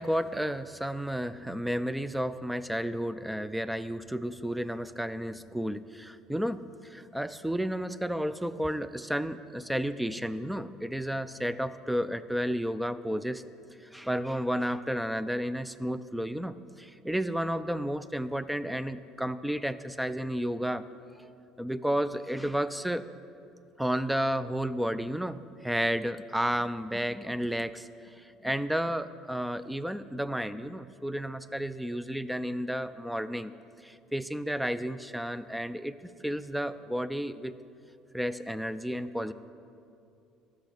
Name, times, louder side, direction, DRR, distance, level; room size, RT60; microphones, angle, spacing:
voice 1, 0.0-13.5 13.8-20.9 21.6-23.1 23.8-33.5 33.8-36.0 36.2-37.5 38.1-39.3, equal, 5° right, 14 dB, 0.3 m, -32 dB
13.5 x 6.2 x 5.8 m, 2.6 s
cardioid pair, 130°, 0 cm